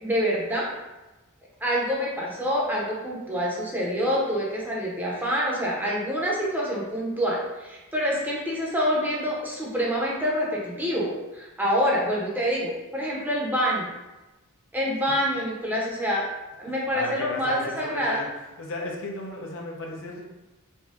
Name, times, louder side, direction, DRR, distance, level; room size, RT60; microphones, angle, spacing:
voice 1, 0.0-0.7 1.6-13.9 14.7-16.3 16.6-18.2, equal, 10° right, -4 dB, 0.8 m, -26 dB
voice 2, 16.7-18.3 18.6-20.2, left 1 dB, 65° left, 0 dB, 0.7 m, -34 dB
4.2 x 2.2 x 3.6 m, 1.1 s
head